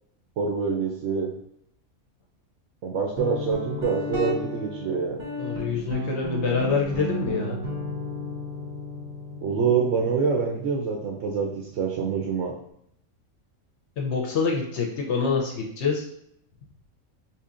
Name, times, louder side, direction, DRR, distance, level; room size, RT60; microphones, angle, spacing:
voice 1, 0.4-1.3 2.8-5.2 9.4-12.6, right 5 dB, 65° right, -1 dB, 0.8 m, -26 dB
Guitar, 3.2-12.6, equal, 40° right, 0.9 m, -34 dB
voice 2, 5.4-7.6 14.0-16.1, left 5 dB, 60° left, 0 dB, 0.8 m, -26 dB
4.4 x 2.7 x 2.4 m, 0.74 s
omnidirectional pair, 1.5 m